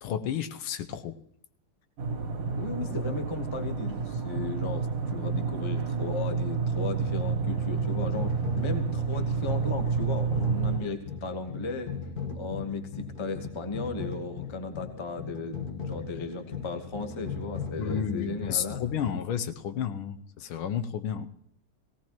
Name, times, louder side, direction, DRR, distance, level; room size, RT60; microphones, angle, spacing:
voice 1, 0.0-1.2 17.8-21.3, left 8 dB, 80° left, 9 dB, 1.6 m, -31 dB
sound 1, 2.0-10.8, right 5 dB, 80° right, 2.4 m, -29 dB
voice 2, 2.6-11.9 12.3-18.8, left 3 dB, 20° left, 7 dB, 0.7 m, -36 dB
sound 2, 6.7-19.1, left 6 dB, 50° left, 1.7 m, -39 dB
18.0 x 17.0 x 3.0 m, 0.76 s
omnidirectional pair, 2.4 m